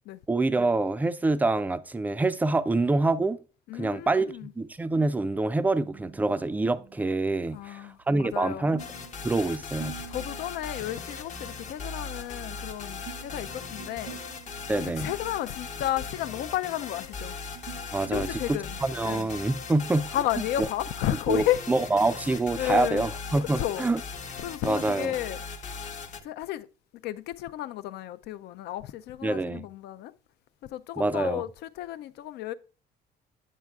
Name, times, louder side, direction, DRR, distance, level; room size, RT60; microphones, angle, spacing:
voice 1, 0.3-3.4 3.7-8.8 9.2-9.9 14.7-15.1 17.9-18.3 18.8-20.1 20.6-20.7 21.3-24.0 24.6-25.1 29.2-29.6 31.0-31.4, right 2 dB, 10° right, 0.3 m, -26 dB
voice 2, 3.7-4.5 7.5-8.7 9.4-9.6 10.1-14.2 14.8-17.4 18.1-19.3 20.1-21.6 22.6-23.1 23.4-23.8 24.4-25.4 26.2-26.7 26.9-30.1 30.7-32.5, left 13 dB, 75° left, 0.4 m, -32 dB
sound 1, 4.1-20.1, right 9 dB, 90° right, 0.9 m, -50 dB
sound 2, 8.8-26.2, left 5 dB, 45° left, 0.8 m, -39 dB
9.1 x 7.3 x 2.3 m
cardioid pair, 110°, 17 cm